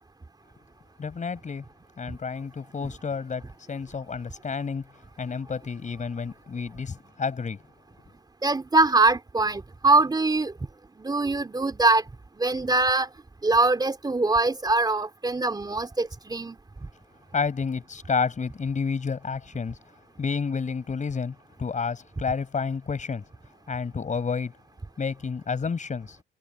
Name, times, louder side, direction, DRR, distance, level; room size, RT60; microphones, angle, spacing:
voice 1, 1.0-1.6 2.0-4.8 5.2-7.6 17.3-19.8 20.2-23.2 23.7-24.5 25.0-26.2, left 5 dB, 40° left, 6.0 m, -30 dB
voice 2, 8.4-10.5 11.0-12.0 12.4-13.1 13.4-16.6, right 3 dB, 20° right, 2.9 m, -23 dB
cardioid pair, 90°, 20 cm